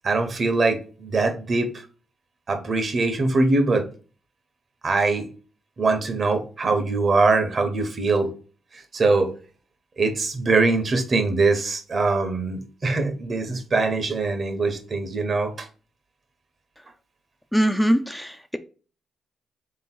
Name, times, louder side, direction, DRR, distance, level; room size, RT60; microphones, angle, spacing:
voice 1, 0.0-1.7 2.5-3.9 4.8-5.3 5.8-8.3 8.9-9.3 10.0-15.7, right 3 dB, 50° right, 1.0 m, -22 dB
voice 2, 17.5-18.6, equal, 5° left, 0.5 m, -22 dB
3.4 x 3.0 x 4.4 m
hypercardioid pair, 45°, 0 cm